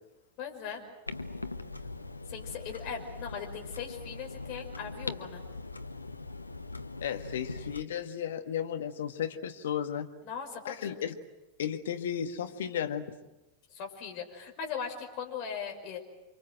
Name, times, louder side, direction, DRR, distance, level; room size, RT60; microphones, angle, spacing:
voice 1, 0.4-0.8 2.3-5.4 10.2-11.1 13.7-16.3, left 7 dB, 45° left, 2 dB, 5.8 m, -39 dB
Clock, 1.1-7.8, left 3 dB, 85° left, 1.0 m, -41 dB
voice 2, 7.0-10.1 10.6-11.2 11.6-13.1, left 9 dB, 60° left, 6 dB, 1.8 m, -34 dB
29.0 x 25.5 x 7.9 m, 1.0 s
figure-of-eight pair, 90°, 0 cm